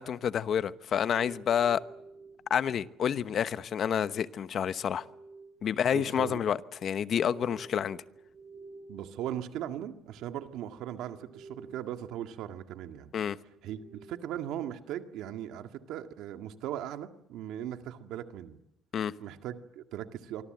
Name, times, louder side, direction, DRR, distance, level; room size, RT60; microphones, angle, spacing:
voice 1, 0.0-1.8 2.5-5.0 5.6-8.0 13.1-13.4 18.9-19.1, left 8 dB, 50° left, 1.0 m, -29 dB
sound 1, 1.1-3.5 4.5-10.5 10.8-12.3 13.2-14.4, right 3 dB, 70° right, 5.5 m, -52 dB
voice 2, 5.9-6.4 8.9-13.1 13.6-18.6 19.2-20.4, right 11 dB, 85° right, 1.9 m, -38 dB
26.5 x 24.5 x 7.9 m
cardioid pair, 125°, 0 cm